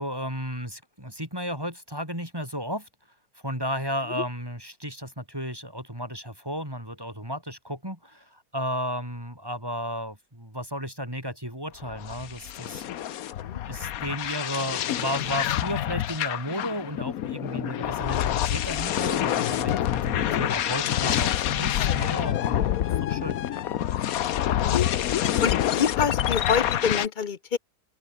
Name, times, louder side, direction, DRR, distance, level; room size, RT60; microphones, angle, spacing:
voice 1, 0.0-2.9 3.4-12.8 13.7-23.4, equal, 15° right, 6.2 m, -33 dB
sound 1, 11.8-27.1, left 11 dB, 65° left, 1.2 m, -27 dB
voice 2, 25.4-27.6, left 6 dB, 35° left, 0.9 m, -27 dB
open air
omnidirectional pair, 1.7 m